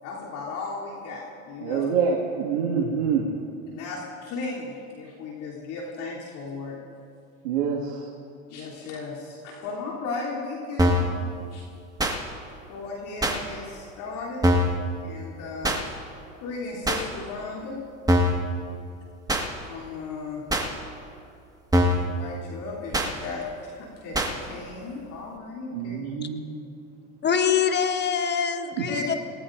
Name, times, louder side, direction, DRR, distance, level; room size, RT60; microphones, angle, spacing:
voice 1, 0.0-1.9 3.7-6.8 8.5-11.2 11.5-11.6 12.7-14.4 15.0-15.8 16.4-17.8 19.7-20.4 21.9-26.0 28.9-29.0, left 3 dB, 50° left, -6 dB, 3.5 m, -36 dB
voice 2, 1.6-3.3 7.4-8.1 25.7-26.4, right 6 dB, 70° right, -2 dB, 2.2 m, -26 dB
sound 1, 10.8-11.1 12.0-12.2 13.2-13.4 14.4-14.8 15.6-15.8 16.9-17.0 18.1-18.4 19.3-19.5 20.5-20.7 21.7-22.1 22.9-23.1 24.1-24.3, equal, 10° right, 1.8 m, -22 dB
voice 3, 27.2-29.1, left 7 dB, 25° left, 7 dB, 1.3 m, -24 dB
28.5 x 19.0 x 2.7 m, 2.5 s
hypercardioid pair, 85°, 40 cm